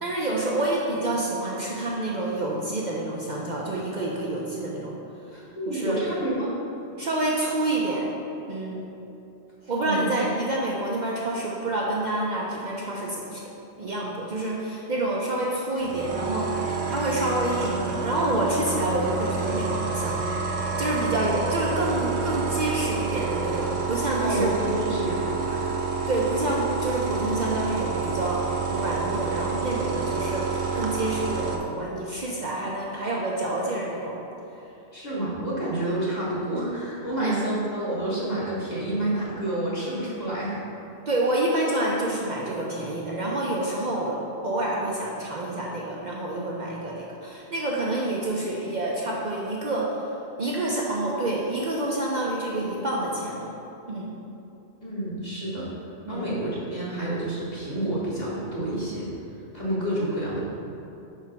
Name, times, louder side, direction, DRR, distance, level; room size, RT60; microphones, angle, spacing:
voice 1, 0.0-4.9 5.3-6.0 7.0-8.1 8.5-8.8 9.7-13.4 13.8-20.2 20.5-24.5 26.1-34.2 37.2-37.4 41.1-44.2 44.4-50.0 50.4-53.5 53.9-54.2 56.1-56.3, right 1 dB, 50° right, -4 dB, 0.7 m, -28 dB
voice 2, 5.3-6.5 9.8-10.0 24.2-25.6 34.9-40.6 54.8-55.7 56.1-59.1 59.5-60.5, right 1 dB, 40° left, -8 dB, 1.6 m, -29 dB
sound 1, 15.8-31.6, right 4 dB, 85° right, 1.0 m, -28 dB
4.8 x 4.6 x 5.7 m, 2.8 s
omnidirectional pair, 1.1 m